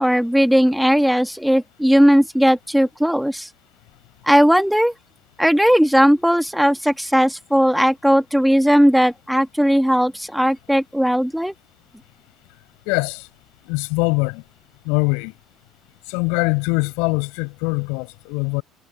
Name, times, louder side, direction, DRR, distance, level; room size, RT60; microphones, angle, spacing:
voice 1, 0.0-3.5 4.3-4.9 5.4-11.5, equal, ahead, 2.7 m, -17 dB
voice 2, 12.9-13.3 13.6-14.4 14.8-15.3 16.1-18.6, left 34 dB, 65° left, 6.2 m, -22 dB
figure-of-eight pair, 60°, 0 cm